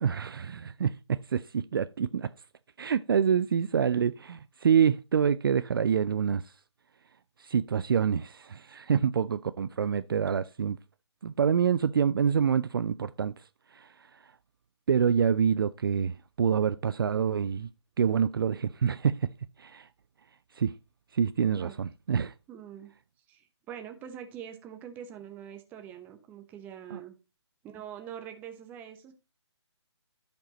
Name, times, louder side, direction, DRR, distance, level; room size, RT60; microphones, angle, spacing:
voice 1, 0.0-2.3 2.8-6.4 7.4-10.8 11.2-13.3 13.7-13.9 14.9-17.7 18.0-19.2 19.6-19.9 20.6-20.7 21.1-22.3 26.9-27.0, right 7 dB, 50° right, 0.4 m, -26 dB
voice 2, 22.5-22.9 23.3-27.2 27.6-29.1, right 9 dB, 10° right, 0.9 m, -44 dB
14.5 x 5.3 x 3.0 m
figure-of-eight pair, 145°, 15 cm